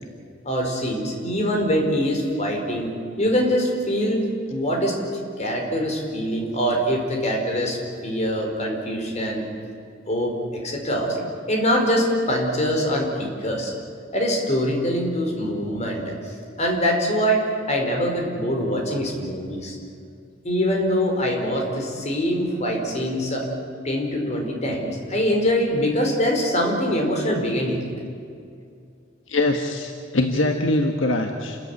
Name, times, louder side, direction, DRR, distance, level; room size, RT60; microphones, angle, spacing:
voice 1, 0.4-2.9 3.2-5.0 5.4-9.5 10.1-11.2 11.5-13.7 14.1-19.8 20.4-23.5 23.8-27.8, equal, 40° left, 2 dB, 4.7 m, -24 dB
voice 2, 29.3-31.6, left 2 dB, 90° left, 4 dB, 1.5 m, -23 dB
29.0 x 14.5 x 9.8 m, 2.4 s
head